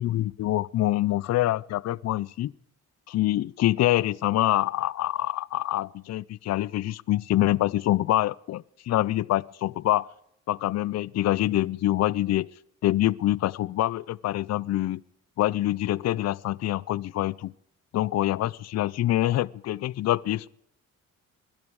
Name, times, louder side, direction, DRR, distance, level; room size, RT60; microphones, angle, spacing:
voice 1, 0.0-2.5 3.1-10.1 10.5-12.5 12.8-15.0 15.4-17.5 17.9-20.5, left 14 dB, 60° left, 0.5 m, -25 dB
21.0 x 12.5 x 4.8 m
cardioid pair, 90°, 30 cm